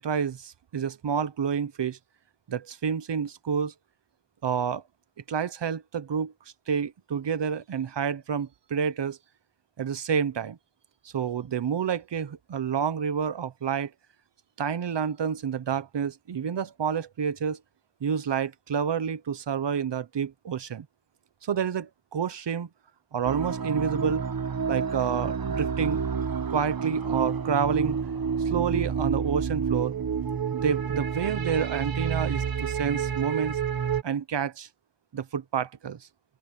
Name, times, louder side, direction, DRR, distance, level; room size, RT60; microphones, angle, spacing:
voice 1, 0.0-2.0 2.5-3.7 4.4-4.8 5.3-6.3 6.7-9.2 9.8-10.6 11.1-13.9 14.6-17.6 18.0-20.8 21.4-22.7 23.1-24.2 24.7-26.0 26.5-28.0 28.4-29.9 30.5-33.6 34.0-34.7 35.1-36.0, right 7 dB, 80° right, 1.1 m, -29 dB
sound 1, 23.2-34.0, right 6 dB, 55° right, 1.5 m, -29 dB
open air
wide cardioid pair, 65°, 41 cm